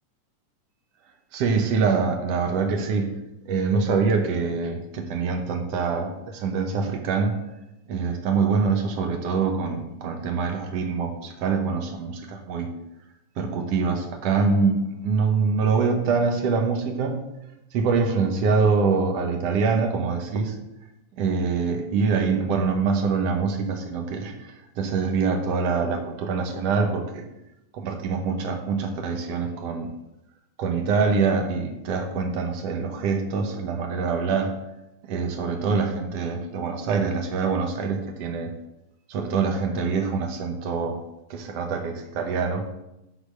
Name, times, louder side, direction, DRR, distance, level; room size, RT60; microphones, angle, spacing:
voice 1, 1.3-3.1 3.4-7.4 7.9-12.8 13.4-17.2 17.7-20.6 21.1-27.2 27.7-29.9 30.6-34.5 35.0-38.5 39.1-41.0 41.3-42.6, right 5 dB, 65° right, 4 dB, 1.6 m, -24 dB
9.7 x 4.0 x 6.4 m, 0.91 s
omnidirectional pair, 3.8 m